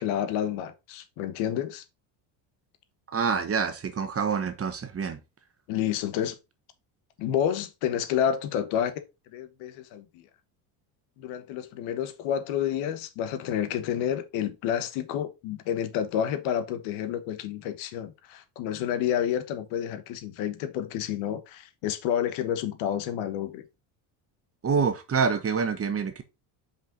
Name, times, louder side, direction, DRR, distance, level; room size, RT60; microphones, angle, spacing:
voice 1, 0.0-1.8 5.7-6.4 7.2-9.0 9.3-10.3 11.2-23.6, left 9 dB, 80° left, 1.3 m, -29 dB
voice 2, 3.1-5.2 24.6-26.2, right 6 dB, 30° right, 1.2 m, -26 dB
5.5 x 5.1 x 3.8 m
supercardioid pair, 100°, 47 cm